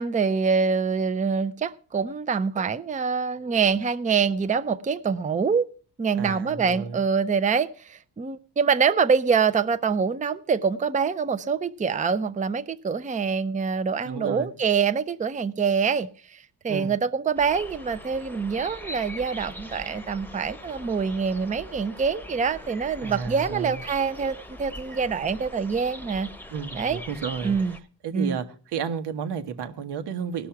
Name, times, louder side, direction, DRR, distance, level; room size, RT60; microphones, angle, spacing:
voice 1, 0.0-5.7 6.0-26.3 26.7-27.0 27.4-27.8 28.1-28.4, right 5 dB, 20° right, 0.6 m, -25 dB
voice 2, 6.1-7.1 14.0-14.6 16.7-16.9 23.0-23.8 26.5-27.6 28.0-28.4 28.7-30.5, right 6 dB, 85° right, 1.3 m, -32 dB
sound 1, 17.4-27.8, left 1 dB, 5° left, 1.0 m, -41 dB
18.0 x 6.2 x 5.8 m
cardioid pair, 100°, 39 cm